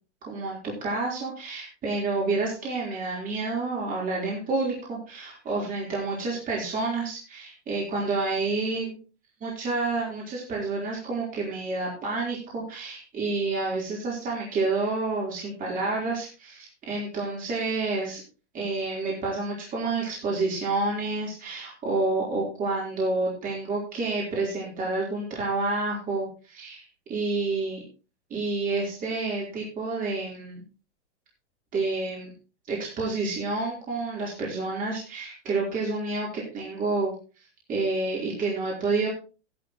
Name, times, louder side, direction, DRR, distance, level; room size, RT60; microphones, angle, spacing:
voice 1, 0.3-9.0 9.4-18.2 18.5-27.8 28.3-30.6 31.7-32.3 32.7-39.1, right 3 dB, 25° right, -4 dB, 4.0 m, -29 dB
13.5 x 11.5 x 3.1 m, 0.35 s
hypercardioid pair, 140°, 36 cm